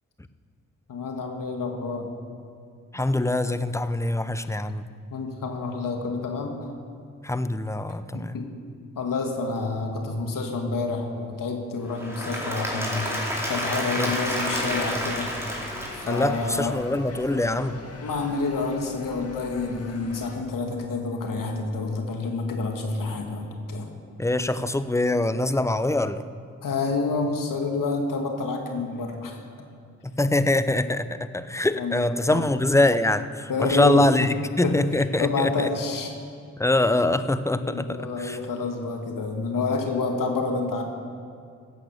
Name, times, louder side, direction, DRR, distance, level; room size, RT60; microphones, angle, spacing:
voice 1, 0.9-2.1 5.1-6.5 8.1-8.5 9.0-15.3 15.9-16.7 18.0-23.9 26.6-29.3 31.8-32.0 32.3-32.4 33.5-34.3 34.6-34.8 35.2-36.1 37.5-40.8, left 3 dB, 70° left, 3 dB, 1.9 m, -28 dB
voice 2, 2.9-4.8 7.2-8.4 13.9-14.1 16.1-17.8 24.2-26.2 30.0-35.7 36.6-38.4, left 2 dB, 10° left, 12 dB, 0.8 m, -24 dB
Applause / Crowd, 11.9-16.9, equal, 5° right, 4.3 m, -30 dB
sound 1, 14.2-20.4, left 3 dB, 45° left, 2.2 m, -42 dB
15.0 x 8.5 x 6.8 m, 2.3 s
supercardioid pair, 45°, 34 cm